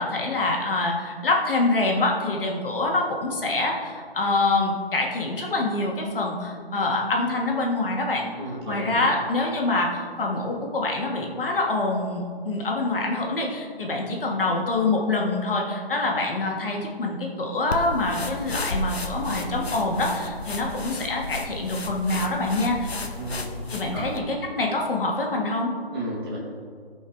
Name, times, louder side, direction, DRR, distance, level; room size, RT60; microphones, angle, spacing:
voice 1, 0.0-8.3 8.7-22.9 23.7-25.7, left 2 dB, 60° left, 0 dB, 1.9 m, -25 dB
voice 2, 8.4-9.0 23.2-23.5 23.9-24.1 25.9-26.4, right 1 dB, 25° right, -5 dB, 1.7 m, -33 dB
sound 1, 17.7-24.2, left 2 dB, 90° left, 1.0 m, -33 dB
14.5 x 5.4 x 3.6 m, 2.1 s
figure-of-eight pair, 155°, 31 cm